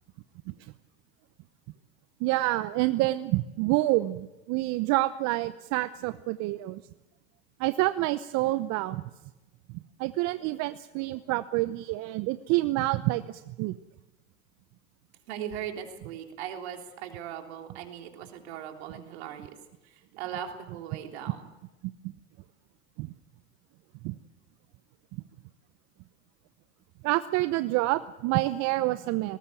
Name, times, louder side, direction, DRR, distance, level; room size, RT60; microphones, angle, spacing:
voice 1, 2.2-6.8 7.6-9.0 10.0-13.8 22.0-22.1 23.0-23.1 24.0-24.2 27.0-29.4, right 18 dB, 55° right, 13 dB, 0.9 m, -27 dB
voice 2, 15.3-19.6 19.8-21.4, right 9 dB, 75° right, 4 dB, 3.4 m, -39 dB
19.5 x 19.0 x 8.5 m, 1.0 s
hypercardioid pair, 90°, 32 cm